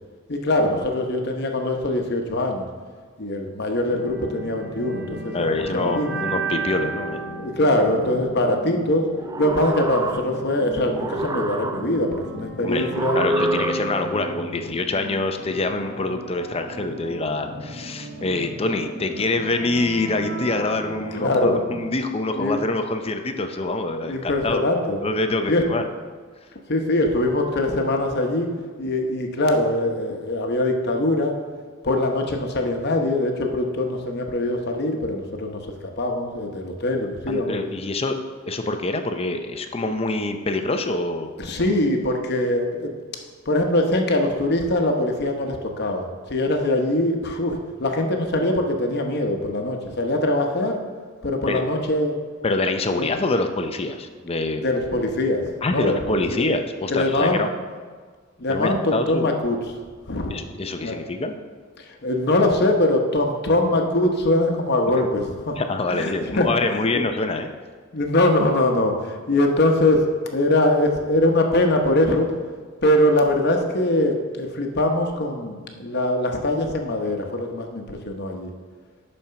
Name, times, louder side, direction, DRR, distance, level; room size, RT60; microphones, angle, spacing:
voice 1, 0.3-2.7 3.2-6.2 7.4-9.1 9.4-13.2 21.1-21.6 22.4-22.6 24.0-25.0 25.5-25.6 26.7-28.5 28.8-31.4 31.8-35.6 36.0-37.6 41.4-42.9 43.5-46.0 46.3-50.8 51.2-52.1 52.9-53.1 54.6-55.4 55.7-56.5 56.9-57.4 58.4-59.6 60.1-60.4 60.8-61.0 61.8-65.6 65.9-67.0 67.9-70.0 70.3-72.3 72.8-78.5, left 1 dB, 55° left, 3 dB, 1.0 m, -22 dB
sound 1, 3.9-21.8, right 2 dB, 60° right, 2.7 m, -34 dB
voice 2, 5.3-7.2 12.6-24.7 25.0-25.8 37.3-38.2 38.5-41.3 51.5-51.6 52.4-54.6 55.6-57.5 58.5-59.3 60.3-61.4 65.6-67.5, left 2 dB, 30° left, 7 dB, 0.5 m, -25 dB
sound 2, 9.1-10.6 10.9-12.2 12.9-14.2, right 2 dB, 20° right, 0.3 m, -27 dB
11.0 x 4.4 x 5.7 m, 1.5 s
head